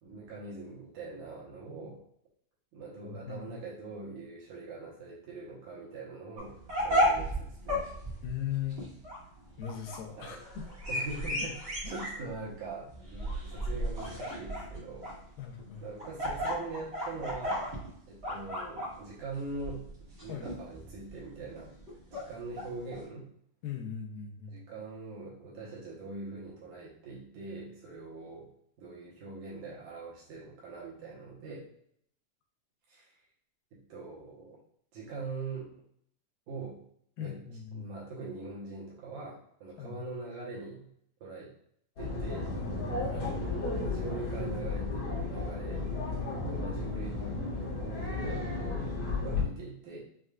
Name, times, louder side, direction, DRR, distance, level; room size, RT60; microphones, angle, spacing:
voice 1, 0.0-2.0 2.7-6.6 6.8-7.9 10.2-10.4 10.9-11.6 11.9-15.1 15.8-17.7 18.1-19.9 20.2-21.7 22.1-23.3 24.5-28.5 28.8-31.7 32.9-33.1 33.7-34.6 34.9-35.7 36.5-36.8 37.2-37.4 37.7-40.9 41.2-41.5 42.0-42.5 43.1-45.9 46.4-47.4 47.8-48.9 49.2-50.0, right 3 dB, 70° right, -6 dB, 2.0 m, -42 dB
voice 2, 3.0-3.5 8.2-8.8 9.6-10.7 11.3-11.5 11.8-12.0 15.4-15.9 20.3-20.5 23.6-24.6 37.2-37.9 39.8-40.0 43.0-43.3 43.6-43.8, left 9 dB, 80° left, 2 dB, 2.3 m, -39 dB
sound 1, 6.4-23.0, equal, 45° right, 0.8 m, -34 dB
sound 2, 42.0-49.4, left 3 dB, 60° left, 1.9 m, -33 dB
6.4 x 2.3 x 2.3 m, 0.67 s
omnidirectional pair, 4.0 m